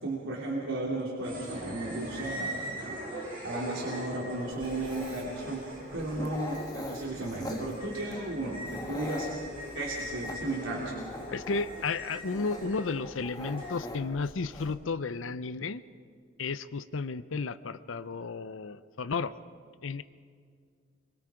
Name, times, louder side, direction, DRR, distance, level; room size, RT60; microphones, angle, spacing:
voice 1, 0.0-5.6 5.9-9.3 9.7-11.0, right 2 dB, 90° right, -5 dB, 3.2 m, -34 dB
sound 1, 1.2-13.7, equal, 25° right, 7.2 m, -42 dB
Dog, 4.5-14.8, left 1 dB, 20° left, 1.7 m, -43 dB
voice 2, 11.3-15.8 16.4-19.3 19.8-20.0, left 4 dB, 80° left, 14 dB, 0.6 m, -33 dB
25.5 x 23.5 x 5.1 m, 2.1 s
head